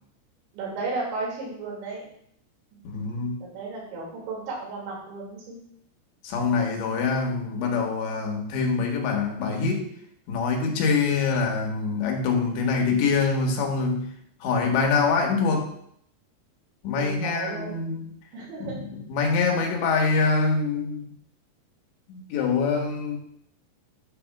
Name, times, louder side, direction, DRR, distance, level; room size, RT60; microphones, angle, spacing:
voice 1, 0.5-2.1 2.7-2.8 3.4-5.6 17.0-17.8 18.3-18.8, right 3 dB, 85° right, -4 dB, 4.9 m, -34 dB
voice 2, 2.9-3.4 6.2-9.9 10.3-14.1 14.4-15.7 16.8-18.1 18.6-21.1 22.1-23.2, left 4 dB, 75° left, 1 dB, 3.6 m, -25 dB
9.9 x 3.5 x 7.1 m, 0.68 s
omnidirectional pair, 5.1 m